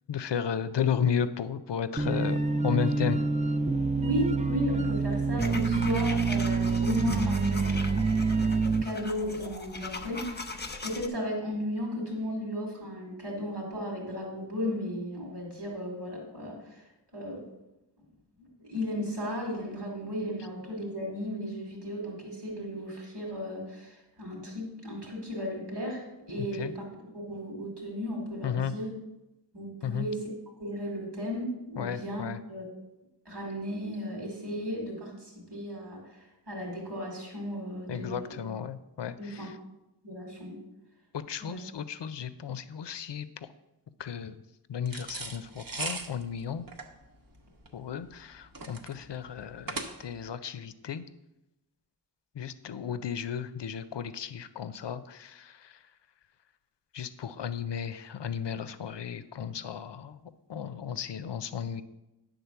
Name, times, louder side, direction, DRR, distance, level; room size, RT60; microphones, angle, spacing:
voice 1, 0.1-3.2 26.4-26.7 28.4-28.7 29.8-30.1 31.8-32.4 37.9-39.5 41.1-43.5 44.0-44.4 44.7-46.7 47.7-51.0 52.4-55.8 56.9-60.2 60.5-61.8, left 7 dB, 90° left, 13 dB, 0.5 m, -34 dB
sound 1, 2.0-8.8, right 4 dB, 20° right, 0.4 m, -27 dB
voice 2, 4.0-8.5 8.8-10.5 10.8-17.5 18.6-28.9 29.5-30.3 30.6-32.6 33.2-38.4 39.1-39.5 40.0-40.6 41.4-41.6, left 1 dB, 75° right, -1 dB, 2.6 m, -35 dB
sound 2, 5.4-11.1, left 3 dB, 25° left, 0.7 m, -40 dB
sound 3, 44.9-50.3, right 3 dB, 55° right, 1.0 m, -39 dB
9.5 x 3.9 x 6.8 m, 0.95 s
wide cardioid pair, 40°, 41 cm